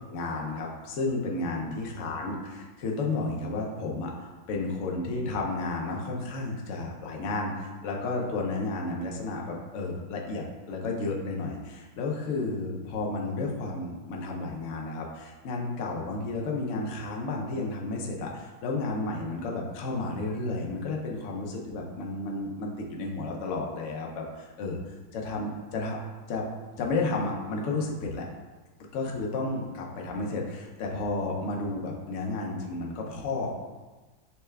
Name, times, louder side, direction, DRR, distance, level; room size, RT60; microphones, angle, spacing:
voice 1, 0.1-26.0 26.3-26.5 26.8-28.3 28.9-33.7, left 3 dB, 80° left, -1 dB, 0.6 m, -32 dB
5.6 x 2.2 x 3.2 m, 1.2 s
omnidirectional pair, 2.0 m